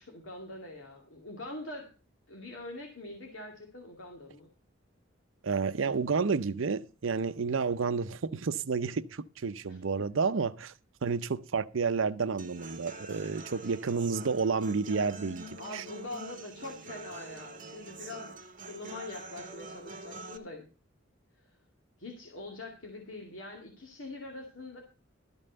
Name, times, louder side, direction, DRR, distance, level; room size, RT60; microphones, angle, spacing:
voice 1, 0.0-1.9 2.3-4.5 9.7-9.8 15.6-18.4 18.7-20.7 21.5-21.6 22.0-24.8, left 2 dB, 80° left, 2.3 m, -44 dB
voice 2, 5.4-10.7 11.0-15.5 15.7-15.8, right 5 dB, 85° right, 0.6 m, -30 dB
Human voice / Acoustic guitar, 12.4-20.4, right 2 dB, 45° right, 1.7 m, -45 dB
13.0 x 5.5 x 6.7 m
head